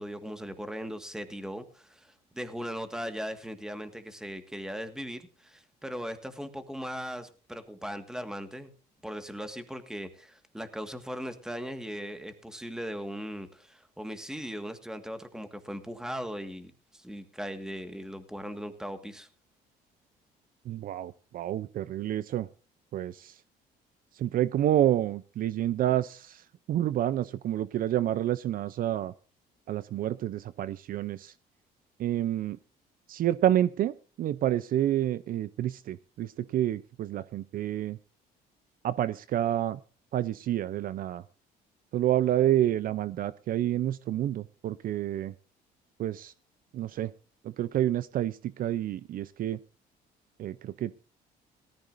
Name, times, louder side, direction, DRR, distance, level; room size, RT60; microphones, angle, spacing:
voice 1, 0.0-8.7 9.0-19.3, equal, 5° right, 9 dB, 1.7 m, -38 dB
voice 2, 20.7-22.5 22.9-23.4 24.1-29.1 29.7-31.3 32.0-32.6 33.1-38.0 38.8-39.8 40.1-41.2 41.9-45.3 46.0-46.3 46.7-47.1 47.4-49.6 50.4-50.9, right 12 dB, 55° right, 16 dB, 0.5 m, -29 dB
18.0 x 14.0 x 2.6 m, 0.37 s
cardioid pair, 110°, 17 cm